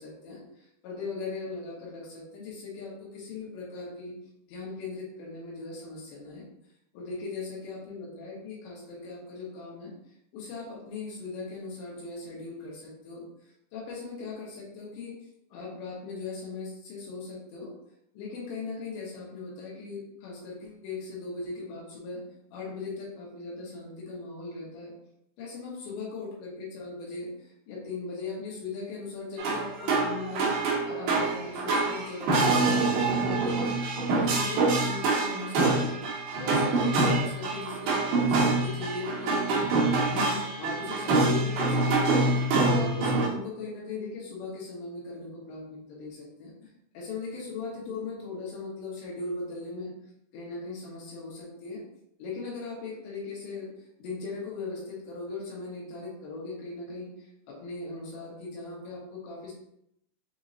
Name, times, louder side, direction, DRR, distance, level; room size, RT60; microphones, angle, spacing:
voice 1, 0.0-4.1 4.5-6.5 6.9-9.9 10.3-13.2 13.7-15.2 15.5-17.7 18.1-22.2 22.5-24.9 25.4-30.5 30.8-36.0 36.4-39.7 40.1-42.2 42.6-46.5 46.9-49.9 50.3-51.8 52.2-53.7 54.0-59.5, left 3 dB, 70° left, -5 dB, 3.2 m, -38 dB
sound 1, 29.4-43.3, right 3 dB, 75° right, 2.2 m, -25 dB
7.3 x 2.8 x 2.6 m, 0.75 s
omnidirectional pair, 5.7 m